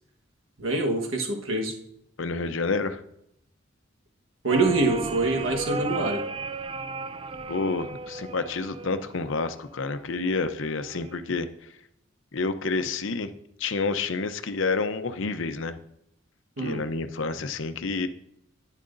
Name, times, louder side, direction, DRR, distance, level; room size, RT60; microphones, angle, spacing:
voice 1, 0.6-1.7 4.4-6.3 16.6-16.9, right 2 dB, 85° right, 2 dB, 1.3 m, -25 dB
voice 2, 2.2-3.0 7.5-11.5 12.3-13.3 13.6-15.8 16.6-18.1, left 4 dB, 70° left, 9 dB, 0.7 m, -29 dB
sound 1, 4.5-9.5 10.7-11.2, right 4 dB, 25° right, 0.4 m, -35 dB
10.5 x 10.0 x 2.6 m, 0.78 s
head